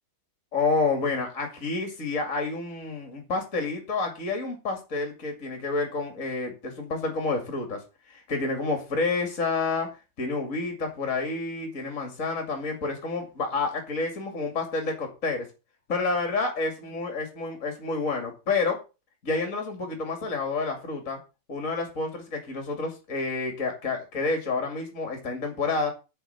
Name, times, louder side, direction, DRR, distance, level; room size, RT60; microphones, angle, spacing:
voice 1, 0.5-7.8 8.1-9.9 10.2-15.4 15.9-18.8 19.2-21.2 21.5-25.9, left 3 dB, 30° left, 4 dB, 1.6 m, -29 dB
10.0 x 6.5 x 6.6 m, 0.30 s
omnidirectional pair, 4.8 m